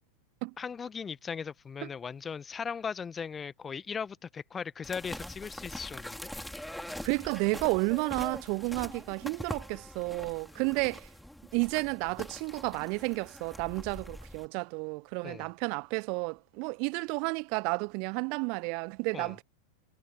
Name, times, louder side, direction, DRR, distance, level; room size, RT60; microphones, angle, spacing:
voice 1, 0.6-6.3 10.5-10.8 15.2-15.5 19.1-19.3, left 6 dB, 20° left, 1.4 m, -38 dB
sound 1, 4.8-14.5, left 1 dB, ahead, 3.7 m, -43 dB
voice 2, 7.0-11.1 11.5-19.4, right 35 dB, 45° right, 0.8 m, -31 dB
figure-of-eight pair, 90°, 0 cm